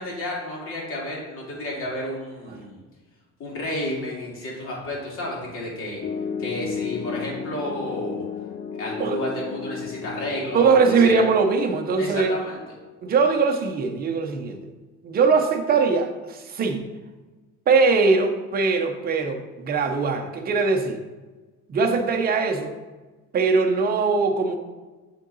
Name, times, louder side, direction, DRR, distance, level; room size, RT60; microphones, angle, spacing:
voice 1, 0.0-2.8 3.4-6.0 6.4-8.2 8.7-11.2 12.0-12.6, left 1 dB, 45° left, -3 dB, 2.4 m, -31 dB
Piano, 6.0-11.0, left 6 dB, 30° left, 0.5 m, -33 dB
voice 2, 10.5-12.3 13.0-14.6 15.0-16.8 17.7-21.0 21.7-22.7 23.3-24.6, right 4 dB, 30° right, 4 dB, 0.8 m, -21 dB
10.5 x 3.8 x 4.0 m, 1.3 s
cardioid pair, 160°, 31 cm